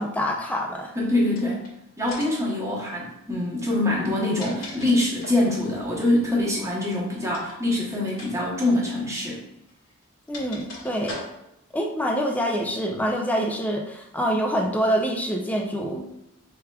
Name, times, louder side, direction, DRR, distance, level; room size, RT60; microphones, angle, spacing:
voice 1, 0.0-0.9 10.3-11.2 11.7-16.0, equal, 10° left, 0 dB, 0.5 m, -26 dB
voice 2, 0.9-1.7 2.0-9.4, left 1 dB, 15° right, -4 dB, 1.0 m, -24 dB
sound 1, 1.3-1.7 2.1-2.5 4.0-5.5 7.3-7.6 8.1-8.3 8.6-8.7 9.7-11.6, left 2 dB, 90° left, 1.5 m, -40 dB
4.8 x 3.5 x 2.3 m, 0.82 s
head